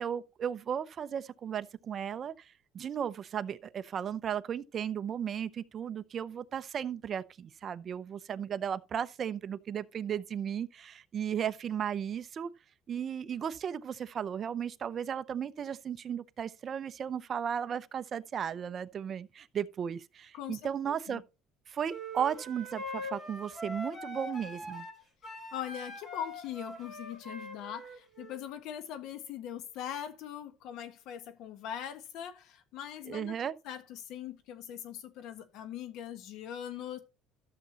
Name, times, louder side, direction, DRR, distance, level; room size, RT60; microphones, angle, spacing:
voice 1, 0.0-12.5 12.9-21.2 21.7-24.9 33.1-33.5, right 8 dB, 40° right, 0.6 m, -35 dB
voice 2, 20.3-21.2 25.5-33.4 33.6-37.0, left 10 dB, 70° left, 1.5 m, -41 dB
sound 1, 21.9-28.4, equal, 30° left, 5.2 m, -42 dB
12.5 x 6.8 x 2.9 m
cardioid pair, 125°, 0 cm